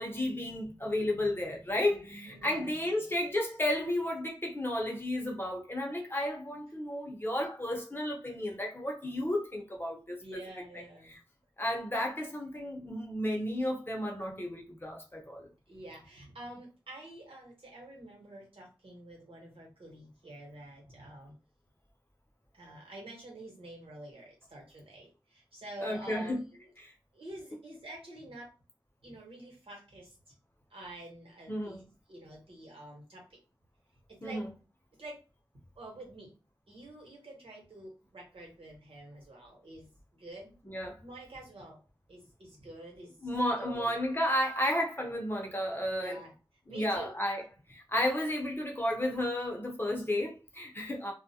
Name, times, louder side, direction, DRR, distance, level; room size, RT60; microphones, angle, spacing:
voice 1, 0.0-10.4 10.7-10.8 11.1-11.2 11.6-15.5 25.8-26.4 26.8-26.9 31.5-31.8 34.2-34.5 40.7-41.0 43.2-46.2 46.7-47.4 47.7-51.1, left 1 dB, 25° left, 0.8 m, -32 dB
voice 2, 1.9-2.7 10.2-11.1 15.7-21.3 22.5-26.7 27.1-28.5 29.0-30.1 30.7-31.8 32.1-33.4 34.1-34.4 35.0-35.2 35.8-36.3 36.7-40.6 41.0-41.8 42.1-43.1 43.6-43.9 46.0-46.3 46.7-47.1, right 1 dB, 85° right, 1.1 m, -47 dB
2.3 x 2.1 x 2.7 m
wide cardioid pair, 80°, 9 cm